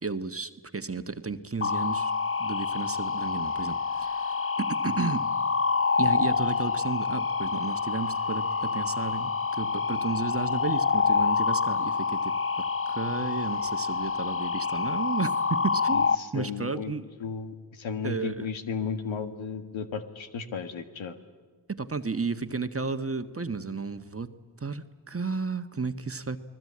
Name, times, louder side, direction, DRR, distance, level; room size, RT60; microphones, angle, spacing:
voice 1, 0.0-2.1 2.4-5.3 6.0-17.1 18.0-18.5 21.7-26.4, right 4 dB, 30° right, 9 dB, 1.4 m, -33 dB
sound 1, 1.6-16.2, left 5 dB, 30° left, 0.9 m, -27 dB
voice 2, 15.9-16.9 17.2-21.2, left 5 dB, 75° left, 8 dB, 1.9 m, -34 dB
29.5 x 20.0 x 8.7 m, 1.4 s
supercardioid pair, 45°, 47 cm